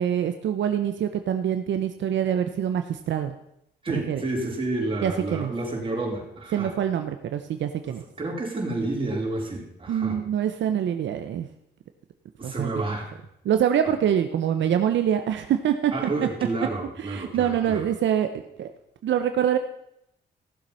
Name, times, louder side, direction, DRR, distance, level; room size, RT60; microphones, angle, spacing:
voice 1, 0.0-3.4 3.9-4.2 5.0-5.5 6.5-8.0 9.9-11.5 12.4-12.8 13.4-15.9 17.0-18.3 18.6-18.7 19.0-19.6, right 9 dB, 80° right, 7 dB, 0.8 m, -25 dB
voice 2, 3.8-6.7 7.8-10.2 12.4-13.2 15.9-17.9, right 2 dB, 30° right, -2 dB, 4.2 m, -30 dB
15.5 x 7.5 x 5.6 m, 0.79 s
cardioid pair, 85°, 19 cm